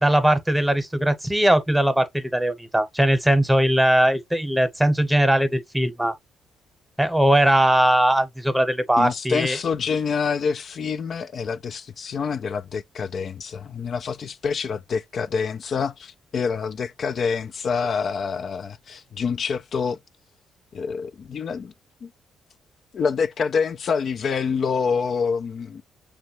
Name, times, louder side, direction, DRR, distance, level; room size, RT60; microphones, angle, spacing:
voice 1, 0.0-6.1 7.0-9.6, right 1 dB, 5° right, 0.9 m, -20 dB
voice 2, 9.0-20.0 20.7-21.7 22.0-22.1 22.9-25.8, left 5 dB, 55° left, 0.3 m, -26 dB
6.4 x 2.2 x 2.9 m
supercardioid pair, 65°, 0 cm